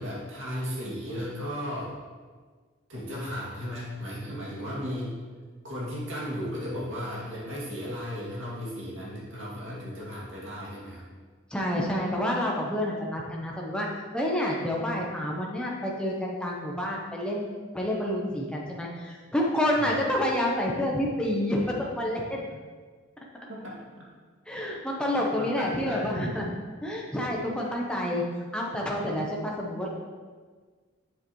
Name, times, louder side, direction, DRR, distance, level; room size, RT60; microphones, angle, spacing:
voice 1, 0.0-1.9 2.9-5.2 5.6-11.1 19.7-19.9 23.5-23.8 25.1-26.1 27.4-27.5, equal, 75° right, -6 dB, 2.4 m, -35 dB
voice 2, 11.5-13.9 14.1-22.6 24.5-26.5 26.8-28.2 28.5-29.9, left 1 dB, 5° left, -3 dB, 0.8 m, -29 dB
7.5 x 7.1 x 3.1 m, 1.5 s
head